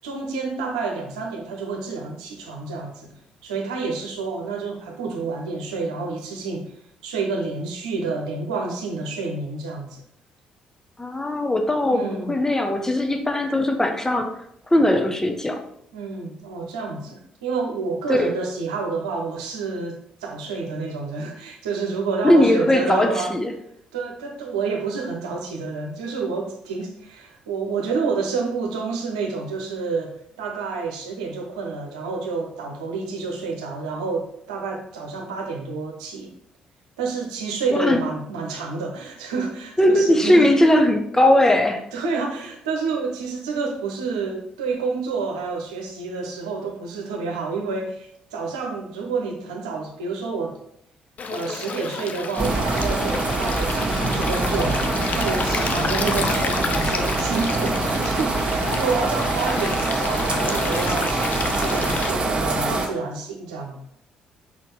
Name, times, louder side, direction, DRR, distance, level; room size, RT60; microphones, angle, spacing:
voice 1, 0.0-3.1 3.4-6.7 7.0-10.0 11.9-12.3 15.9-23.4 23.9-36.3 37.0-40.5 41.9-50.6 51.3-61.2 61.5-63.8, right 4 dB, 75° right, 2 dB, 0.9 m, -29 dB
voice 2, 11.0-14.3 14.7-15.6 18.1-18.3 22.2-23.5 37.7-38.0 39.8-41.8, left 1 dB, 15° left, 5 dB, 1.1 m, -19 dB
Stream, 51.2-62.1, left 5 dB, 45° left, 0.7 m, -30 dB
sound 1, 52.4-62.9, right 2 dB, 30° right, 1.6 m, -24 dB
5.4 x 4.3 x 4.8 m, 0.70 s
figure-of-eight pair, 45°, 4 cm